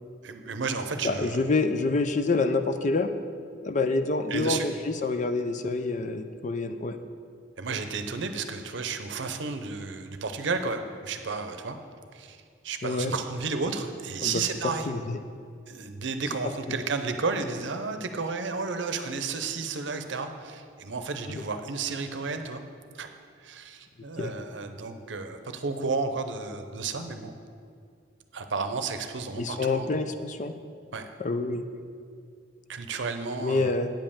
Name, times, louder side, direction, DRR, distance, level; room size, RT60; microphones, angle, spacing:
voice 1, 0.2-1.4 4.3-4.7 7.6-11.8 12.1-12.4 12.6-14.9 15.7-22.6 22.9-23.1 23.4-27.3 28.3-29.9 30.9-31.1 32.7-33.7, right 4 dB, 75° right, 8 dB, 0.7 m, -32 dB
voice 2, 1.0-3.1 3.6-7.0 12.8-13.1 14.2-15.2 21.3-21.4 24.2-24.3 29.4-30.5 31.2-31.6 33.4-33.9, left 3 dB, 40° left, 9 dB, 0.4 m, -27 dB
8.9 x 5.3 x 7.1 m, 2.3 s
head